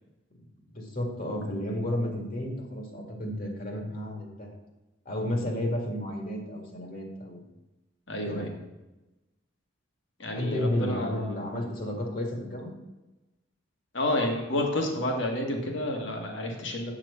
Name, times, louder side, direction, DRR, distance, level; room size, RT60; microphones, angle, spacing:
voice 1, 0.7-4.6 5.1-7.4 8.2-8.5 10.3-12.8, left 1 dB, 45° left, 2 dB, 2.0 m, -32 dB
voice 2, 8.1-8.5 10.2-11.4 13.9-16.9, left 1 dB, 65° left, 2 dB, 1.8 m, -30 dB
8.4 x 6.0 x 5.6 m, 1.0 s
head